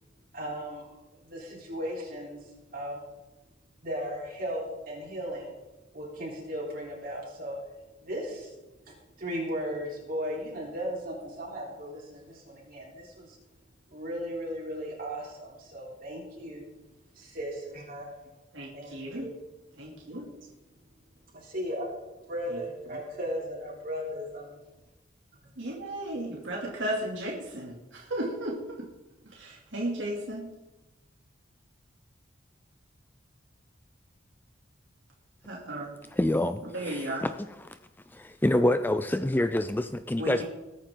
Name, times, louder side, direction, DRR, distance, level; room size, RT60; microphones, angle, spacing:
voice 1, 0.3-0.9 1.2-2.4 2.7-3.0 3.8-5.5 5.9-7.6 8.0-8.5 9.2-13.4 13.9-16.7 17.2-18.1 18.7-19.3 21.3-21.9 22.3-24.6, equal, 50° right, -4 dB, 3.7 m, -36 dB
voice 2, 18.5-19.3 19.8-20.3 22.5-22.6 22.9-23.0 25.6-28.9 29.2-30.5 35.4-35.9 36.7-37.3 40.2-40.4, right 1 dB, 75° right, -3 dB, 2.9 m, -35 dB
voice 3, 36.2-36.6 36.9-37.3 38.1-40.4, left 1 dB, 10° left, 10 dB, 0.4 m, -26 dB
21.0 x 9.4 x 3.8 m, 1.0 s
head